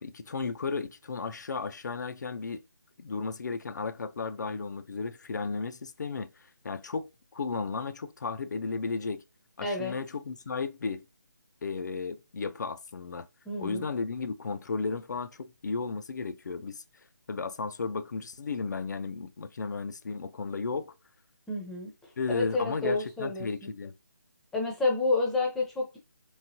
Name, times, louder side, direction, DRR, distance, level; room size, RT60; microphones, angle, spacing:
voice 1, 0.0-2.6 3.0-9.2 9.6-11.0 11.6-13.3 13.6-16.8 17.3-20.9 22.2-23.9, left 4 dB, 60° left, 0.4 m, -34 dB
voice 2, 9.6-10.0 13.5-13.8 21.5-21.9 22.3-23.7 24.5-26.0, left 3 dB, 5° left, 0.6 m, -29 dB
3.5 x 3.1 x 2.7 m
figure-of-eight pair, 155°, 11 cm